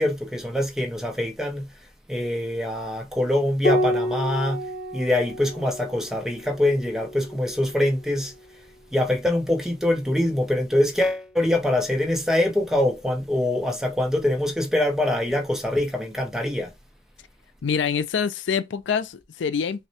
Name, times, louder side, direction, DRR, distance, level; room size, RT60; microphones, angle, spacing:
voice 1, 0.0-1.7 2.1-4.6 4.9-8.3 8.9-16.7, left 1 dB, 5° right, 0.7 m, -24 dB
Piano, 3.6-8.5 10.1-10.9, equal, 40° left, 0.9 m, -30 dB
voice 2, 17.6-19.9, left 6 dB, 85° left, 0.4 m, -25 dB
5.8 x 2.2 x 2.8 m
head